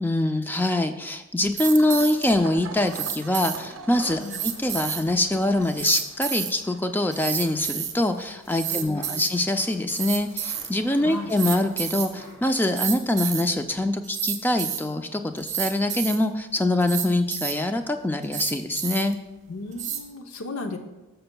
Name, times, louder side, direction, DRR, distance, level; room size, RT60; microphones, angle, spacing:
voice 1, 0.0-19.2, left 1 dB, 10° left, 7 dB, 0.3 m, -24 dB
sound 1, 1.5-7.3, right 4 dB, 60° right, 0.6 m, -44 dB
sound 2, 1.6-2.3 2.9-3.6 4.2-5.0 5.6-6.5 7.1-7.9 8.5-9.3 9.9-10.7 11.3-12.1 12.6-13.4 14.0-14.8 15.4-16.2 16.8-17.5 18.2-19.1 19.7-20.0, right 9 dB, 35° right, 0.9 m, -30 dB
sound 3, 4.3-13.6 14.0-14.1 14.3-14.4, equal, 40° left, 2.7 m, -50 dB
voice 2, 8.7-9.2 11.0-11.3 19.5-20.8, left 2 dB, 75° left, 5 dB, 0.7 m, -35 dB
13.0 x 6.8 x 2.2 m, 1.1 s
head